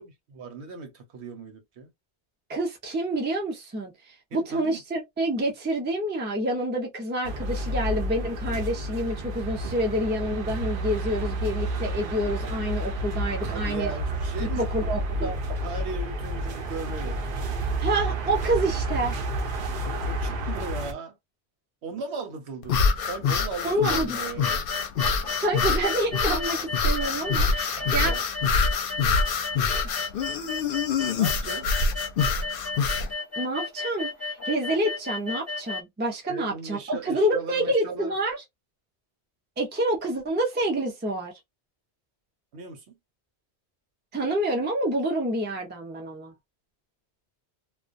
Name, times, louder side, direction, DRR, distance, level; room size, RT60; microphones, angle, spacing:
voice 1, 0.0-1.9 4.3-4.8 13.5-14.7 15.2-17.2 19.8-21.2 21.8-22.8 23.1-24.6 27.8-28.2 31.1-31.7 36.3-38.2 42.5-42.9, right 4 dB, 75° right, 1.0 m, -37 dB
voice 2, 2.5-13.9 14.6-15.4 17.8-19.2 23.6-24.2 25.4-28.1 29.8-30.0 33.4-34.1 34.4-38.4 39.6-41.3 44.1-46.3, right 1 dB, 15° right, 0.3 m, -28 dB
sound 1, 7.2-20.9, right 1 dB, 60° right, 0.7 m, -30 dB
sound 2, 22.6-33.1, left 5 dB, 60° left, 0.7 m, -25 dB
sound 3, 24.4-35.8, left 3 dB, 15° left, 0.6 m, -34 dB
2.3 x 2.2 x 2.5 m
omnidirectional pair, 1.1 m